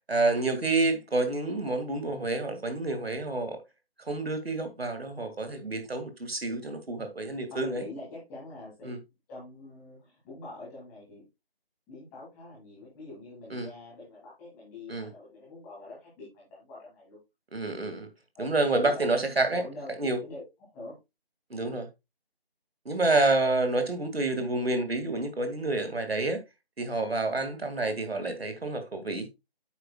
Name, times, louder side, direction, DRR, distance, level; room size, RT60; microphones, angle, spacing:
voice 1, 0.1-3.6 4.0-7.8 8.8-9.0 13.5-13.7 14.9-15.1 17.5-18.1 18.4-19.6 20.0-20.2 21.5-21.9 22.9-26.4 26.8-29.3, right 2 dB, 75° right, 2.2 m, -28 dB
voice 2, 7.5-8.9 9.3-11.2 11.9-17.2 18.3-21.0 21.5-21.8 23.1-23.3, left 2 dB, 5° left, 2.3 m, -45 dB
8.9 x 7.6 x 2.3 m
figure-of-eight pair, 170°, 31 cm